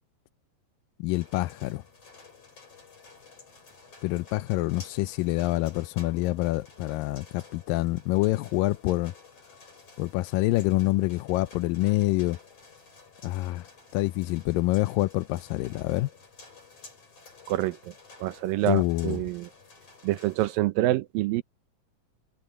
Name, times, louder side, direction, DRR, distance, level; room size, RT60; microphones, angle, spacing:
voice 1, 1.0-1.8 4.0-9.1 10.0-12.4 13.2-13.7 13.9-16.1 18.6-19.2, left 18 dB, 85° left, 2.3 m, -26 dB
sound 1, 1.1-20.6, left 4 dB, 45° left, 7.0 m, -52 dB
voice 2, 17.5-17.9 18.2-19.5 20.0-21.4, right 16 dB, 90° right, 2.6 m, -27 dB
omnidirectional pair, 3.9 m